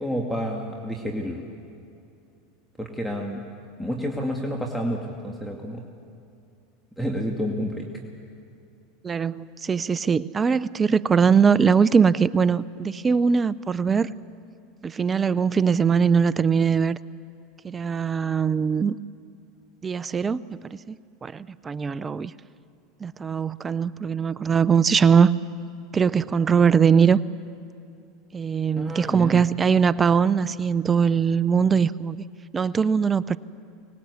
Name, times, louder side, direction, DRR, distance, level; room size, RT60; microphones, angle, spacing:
voice 1, 0.0-1.4 2.8-3.4 3.8-5.8 7.0-7.9 28.8-29.4, equal, ahead, 0 dB, 2.4 m, -29 dB
voice 2, 9.0-14.1 14.8-17.0 17.6-18.9 19.8-20.6 20.9-21.0 21.2-22.3 23.0-25.4 25.9-27.2 28.3-32.2 32.5-33.4, right 6 dB, 25° right, 18 dB, 0.6 m, -21 dB
24.5 x 20.0 x 8.4 m, 2.5 s
hypercardioid pair, 95°, 0 cm